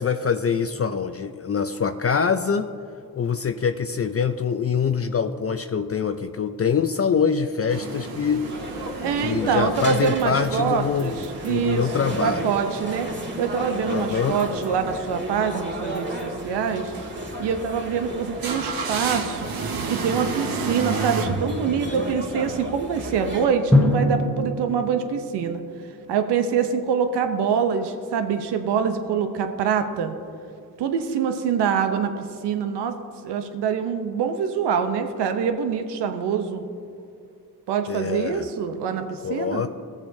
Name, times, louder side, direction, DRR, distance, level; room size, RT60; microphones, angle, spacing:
voice 1, 0.0-2.7 3.2-8.5 9.2-12.5 13.9-14.4 37.9-38.5 39.2-39.7, left 6 dB, 35° left, 8 dB, 0.5 m, -24 dB
sound 1, 7.7-21.3, right 4 dB, 60° right, 1.1 m, -34 dB
sound 2, 8.4-23.5, right 1 dB, 30° right, 1.8 m, -33 dB
voice 2, 9.0-11.2 11.4-13.1 13.4-16.9 17.4-19.5 19.9-25.6 26.1-30.1 30.8-33.0 33.2-36.6 37.7-39.6, right 7 dB, 85° right, 7 dB, 0.8 m, -25 dB
Drum, 23.7-26.4, left 1 dB, 5° left, 1.1 m, -24 dB
15.5 x 7.1 x 2.7 m, 2.4 s
supercardioid pair, 40°, 40 cm